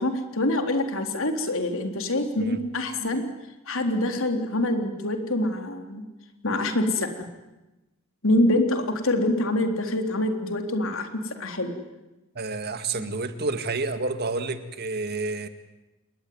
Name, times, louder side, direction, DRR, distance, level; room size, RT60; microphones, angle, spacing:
voice 1, 0.0-3.2 3.7-6.0 6.4-7.2 8.2-11.8 12.9-13.1, left 1 dB, 65° left, 6 dB, 3.7 m, -25 dB
voice 2, 12.4-15.5, right 3 dB, 50° right, 9 dB, 2.1 m, -29 dB
28.0 x 21.0 x 9.6 m, 1.0 s
head